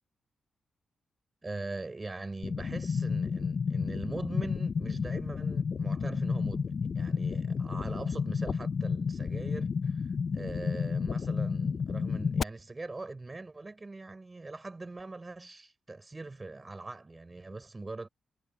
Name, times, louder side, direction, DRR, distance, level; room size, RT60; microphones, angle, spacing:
voice 1, 1.4-10.1 10.3-18.1, right 3 dB, 25° right, 5.2 m, -41 dB
sound 1, 2.4-12.4, left 5 dB, 55° left, 0.5 m, -31 dB
cardioid pair, 75°, 0 cm